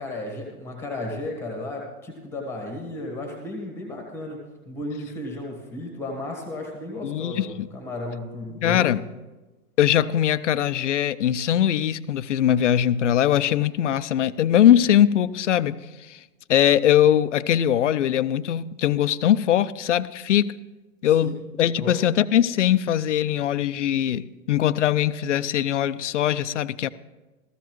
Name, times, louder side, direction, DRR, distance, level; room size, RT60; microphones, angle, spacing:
voice 1, 0.0-8.9 21.2-21.3 21.8-22.0, left 1 dB, 5° left, 1 dB, 1.2 m, -34 dB
voice 2, 7.0-7.7 8.6-9.0 9.8-16.2 16.5-20.5 21.0-26.9, left 11 dB, 55° left, 15 dB, 0.5 m, -21 dB
15.0 x 14.5 x 3.0 m, 1.1 s
hypercardioid pair, 165°, 43 cm